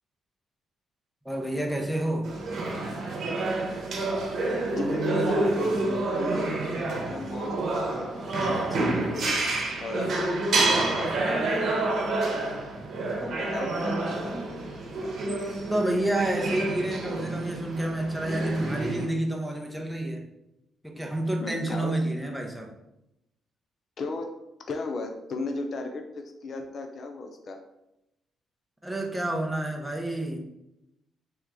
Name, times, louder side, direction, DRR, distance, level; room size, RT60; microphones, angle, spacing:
voice 1, 1.2-2.3 4.0-4.1 15.7-20.2 20.8-22.7 28.8-30.4, right 1 dB, ahead, 0 dB, 0.7 m, -29 dB
sound 1, 2.2-19.1, right 2 dB, 65° right, 0.9 m, -28 dB
voice 2, 4.7-6.5 6.9-12.5 13.2-14.2 21.0-21.1 21.4-21.9 24.0-24.3 24.7-27.6, left 3 dB, 50° left, 5 dB, 0.5 m, -36 dB
3.4 x 3.0 x 3.6 m, 0.89 s
cardioid pair, 90°, 0 cm